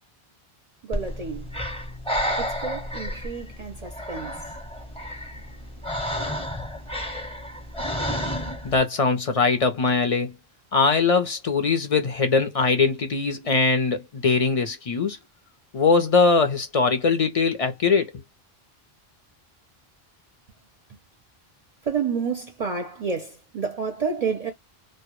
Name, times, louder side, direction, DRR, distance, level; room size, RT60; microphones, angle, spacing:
voice 1, 0.8-1.6 2.4-4.6 20.9-21.0 21.8-24.5, right 5 dB, 50° right, 0.5 m, -30 dB
Breathing, 0.9-8.8, equal, 5° left, 0.6 m, -31 dB
voice 2, 8.6-10.3 10.7-15.2 15.7-18.1, left 4 dB, 50° left, 0.4 m, -21 dB
2.1 x 2.0 x 2.9 m
omnidirectional pair, 1.0 m